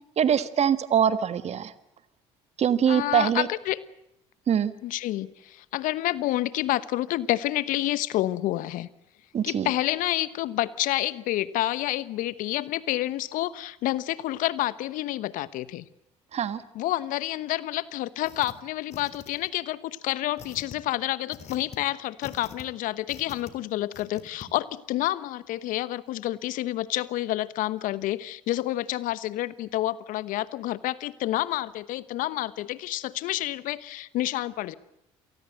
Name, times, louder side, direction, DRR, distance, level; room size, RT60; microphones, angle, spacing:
voice 1, 0.2-1.7 2.6-3.5 4.5-4.7 9.3-9.7 16.3-16.6, right 8 dB, 45° right, 14 dB, 1.6 m, -23 dB
voice 2, 2.9-3.8 4.8-8.9 9.4-15.9 16.7-34.7, left 15 dB, 65° left, 17 dB, 1.0 m, -29 dB
sound 1, 18.2-18.5 18.9-19.6 20.4-20.8 21.3-21.8 22.2-22.6 23.1-23.5 23.9-24.5, left 7 dB, 50° left, 3.2 m, -44 dB
27.5 x 19.0 x 7.9 m, 0.83 s
hypercardioid pair, 65°, 15 cm